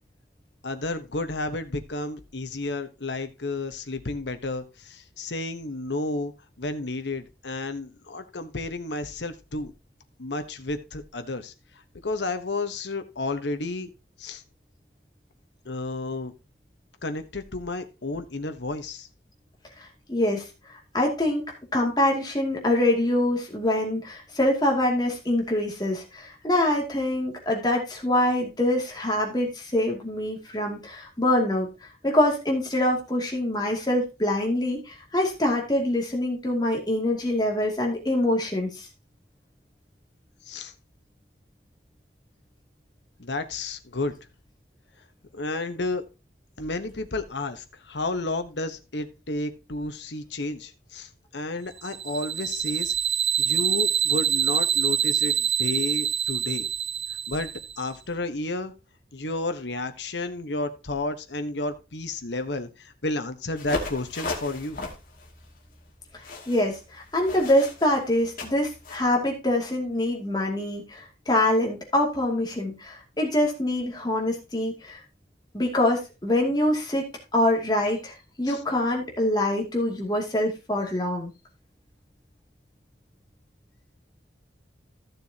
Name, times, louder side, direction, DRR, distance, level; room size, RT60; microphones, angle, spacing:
voice 1, 0.6-6.3 6.6-9.7 10.2-11.5 12.0-13.9 14.2-14.4 15.6-16.3 17.0-19.1 40.5-40.7 43.2-44.1 45.3-46.0 46.6-52.9 53.4-56.7 57.3-58.7 59.1-64.8 78.5-78.6, left 2 dB, 80° left, 8 dB, 1.2 m, -31 dB
voice 2, 19.8-20.4 20.9-21.4 21.7-31.7 32.0-38.9 66.5-75.0 75.5-77.0 77.3-81.3, left 1 dB, 25° left, 0 dB, 2.5 m, -25 dB
sound 1, 51.8-57.8, right 8 dB, 35° right, 0.5 m, -25 dB
sound 2, 63.6-69.1, left 3 dB, 50° left, 2.4 m, -36 dB
14.5 x 6.9 x 2.9 m, 0.28 s
head